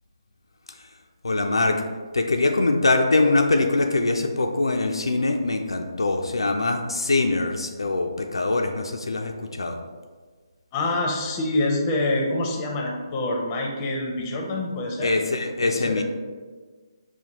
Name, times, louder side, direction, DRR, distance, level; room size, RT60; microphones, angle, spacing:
voice 1, 1.2-1.8 2.1-9.8 15.0-16.0, left 2 dB, 80° left, 3 dB, 0.4 m, -23 dB
voice 2, 10.7-15.1 15.6-16.0, left 2 dB, 25° left, 0 dB, 0.6 m, -26 dB
5.7 x 2.2 x 2.9 m, 1.4 s
figure-of-eight pair, 145°, 3 cm